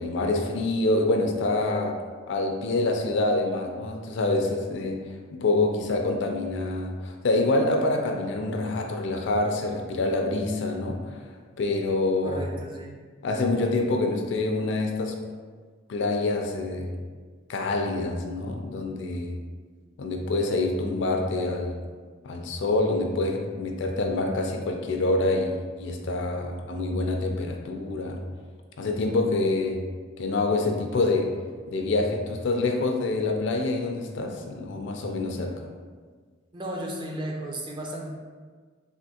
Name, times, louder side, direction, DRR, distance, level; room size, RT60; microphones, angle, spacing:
voice 1, 0.0-2.0 2.3-5.0 5.3-11.3 11.6-12.5 13.2-15.1 15.9-16.9 17.5-19.4 20.0-21.8 22.2-28.2 28.8-29.8 30.2-31.3 31.7-35.5, left 2 dB, 65° left, 3 dB, 0.4 m, -26 dB
voice 2, 12.2-12.9 36.5-38.1, right 1 dB, 25° right, -1 dB, 0.4 m, -34 dB
3.4 x 2.5 x 2.8 m, 1.5 s
head